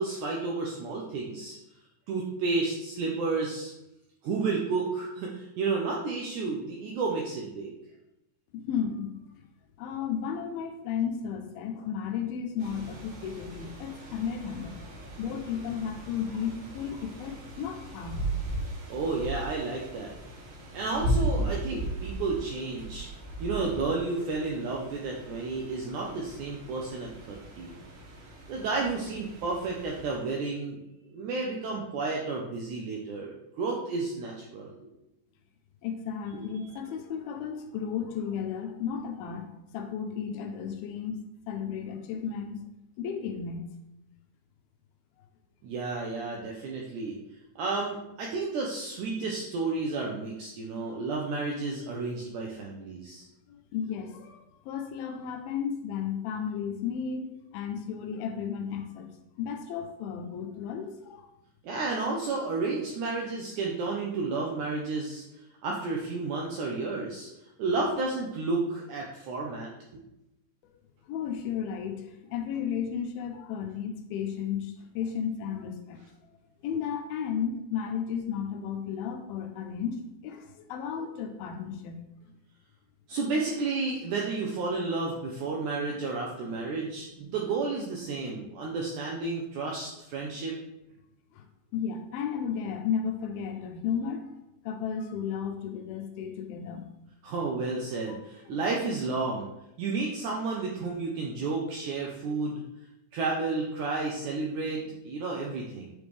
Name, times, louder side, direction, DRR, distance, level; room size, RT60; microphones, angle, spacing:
voice 1, 0.0-1.6 2.1-3.7 4.2-7.7 18.9-20.1 20.7-23.1 23.4-27.7 28.5-30.8 31.1-34.7 36.3-36.5 45.6-47.2 47.5-53.3 61.6-65.2 65.6-67.3 67.6-70.0 83.1-90.5 97.2-99.5 99.8-102.6 103.1-105.9, right 3 dB, 90° right, -2 dB, 1.7 m, -31 dB
voice 2, 8.5-9.1 9.8-14.8 15.2-18.2 35.8-42.6 43.0-43.7 53.5-59.1 59.4-61.3 71.1-76.4 76.6-82.0 91.3-91.5 91.7-94.3 94.6-96.9 98.1-98.2 98.5-98.6, left 7 dB, 85° left, 5 dB, 2.4 m, -34 dB
sound 1, 12.6-30.2, right 1 dB, 70° right, 3.2 m, -37 dB
8.8 x 3.5 x 3.2 m, 0.88 s
omnidirectional pair, 4.3 m